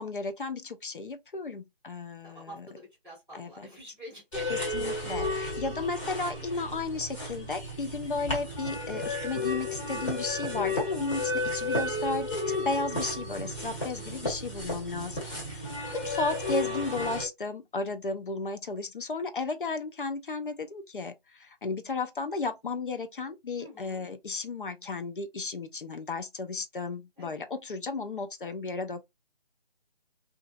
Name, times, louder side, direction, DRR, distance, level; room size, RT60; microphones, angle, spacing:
voice 1, 0.0-2.7 3.3-3.7 4.5-15.3 15.9-29.0, left 3 dB, 60° left, 0.5 m, -34 dB
voice 2, 2.2-4.7 15.2-15.4 23.6-24.0 27.2-27.6, equal, 5° left, 0.6 m, -47 dB
sound 1, 4.3-17.3, left 2 dB, 30° left, 1.3 m, -33 dB
2.5 x 2.3 x 2.4 m
figure-of-eight pair, 155°, 30 cm